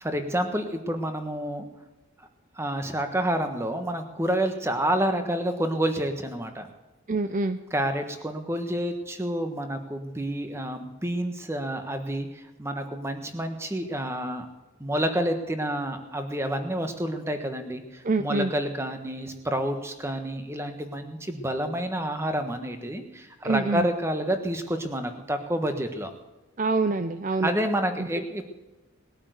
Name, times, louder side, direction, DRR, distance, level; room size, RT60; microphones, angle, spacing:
voice 1, 0.0-1.6 2.5-6.7 7.7-14.5 14.8-26.1 27.4-28.4, right 1 dB, 10° right, 7 dB, 1.3 m, -29 dB
voice 2, 7.1-7.6 18.0-18.5 23.4-23.9 26.6-27.5 28.0-28.1, right 3 dB, 35° right, 9 dB, 0.5 m, -25 dB
20.0 x 8.7 x 7.9 m, 1.1 s
head